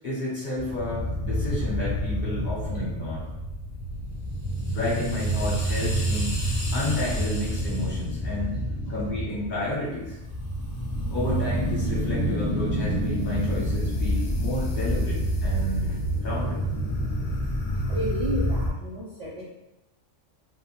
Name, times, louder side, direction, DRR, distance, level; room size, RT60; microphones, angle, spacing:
voice 1, 0.0-3.3 4.7-8.6 8.9-10.2 11.1-16.6, left 1 dB, 45° left, -7 dB, 0.9 m, -31 dB
sound 1, 0.6-18.7, equal, 80° left, 0.3 m, -28 dB
voice 2, 17.8-19.4, equal, 50° right, -8 dB, 0.5 m, -31 dB
2.2 x 2.2 x 2.9 m, 0.97 s
omnidirectional pair, 1.2 m